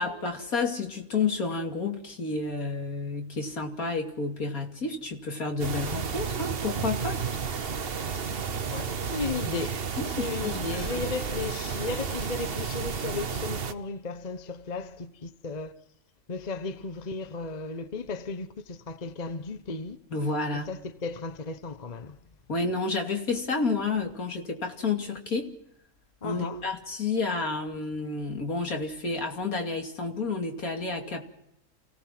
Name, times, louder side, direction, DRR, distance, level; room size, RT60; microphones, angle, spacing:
voice 1, 0.0-7.2 10.0-11.1 20.1-20.7 22.5-25.5 26.2-31.2, left 4 dB, 70° left, 3.0 m, -30 dB
sound 1, 5.6-13.7, right 6 dB, 45° right, 1.1 m, -32 dB
voice 2, 8.1-15.7 16.3-20.0 20.5-22.2 26.2-26.7, left 4 dB, 30° left, 1.0 m, -35 dB
28.5 x 17.5 x 6.1 m
omnidirectional pair, 1.6 m